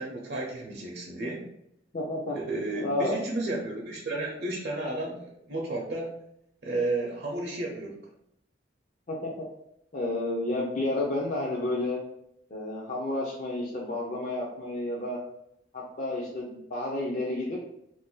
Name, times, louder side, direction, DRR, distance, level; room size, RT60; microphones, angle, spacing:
voice 1, 0.0-1.4 2.3-6.1 6.6-8.0, right 2 dB, 65° right, -1 dB, 0.6 m, -32 dB
voice 2, 1.9-2.4 2.8-3.2 9.1-9.4 9.9-12.0 12.5-15.2 15.7-17.6, left 2 dB, 45° left, -3 dB, 0.5 m, -31 dB
2.5 x 2.2 x 3.7 m, 0.75 s
head